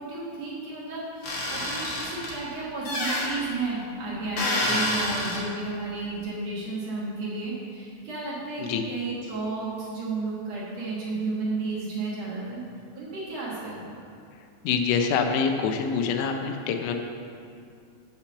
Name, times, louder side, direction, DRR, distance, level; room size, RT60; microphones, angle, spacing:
voice 1, 0.0-12.6 12.9-13.9, right 3 dB, 55° right, -6 dB, 2.2 m, -32 dB
sound 1, 1.2-2.3 2.8-3.3 4.4-5.4, left 1 dB, 55° left, 1.3 m, -28 dB
voice 2, 14.6-16.9, left 6 dB, 85° left, 5 dB, 1.7 m, -25 dB
6.6 x 5.9 x 6.8 m, 2.3 s
omnidirectional pair, 4.2 m